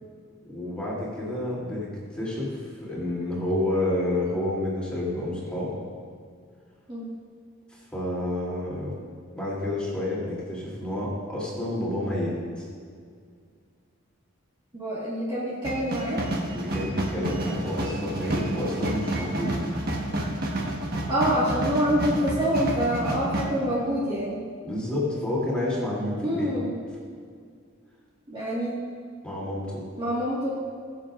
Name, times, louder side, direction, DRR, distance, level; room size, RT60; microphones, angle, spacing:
voice 1, 0.4-5.7 7.7-8.9 9.3-12.6 16.5-19.5 24.6-26.5 29.2-29.8, left 1 dB, 5° left, -7 dB, 2.9 m, -29 dB
voice 2, 14.7-16.2 21.1-24.4 26.2-26.7 28.3-28.8 30.0-30.5, equal, 25° right, -8 dB, 1.7 m, -26 dB
sound 1, 15.6-23.5, right 1 dB, 50° right, 1.4 m, -30 dB
20.5 x 7.4 x 2.5 m, 2.1 s
head